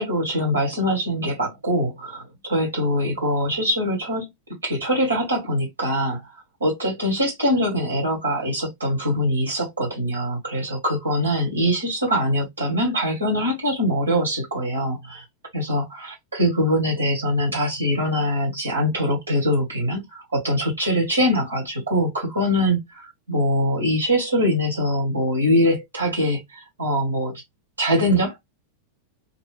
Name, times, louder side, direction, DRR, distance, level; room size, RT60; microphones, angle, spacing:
voice 1, 0.0-4.3 4.6-6.3 6.6-15.2 15.5-27.4 27.8-28.4, equal, 75° right, 1.5 m, -23 dB
2.5 x 2.4 x 3.2 m
figure-of-eight pair, 90°, 0 cm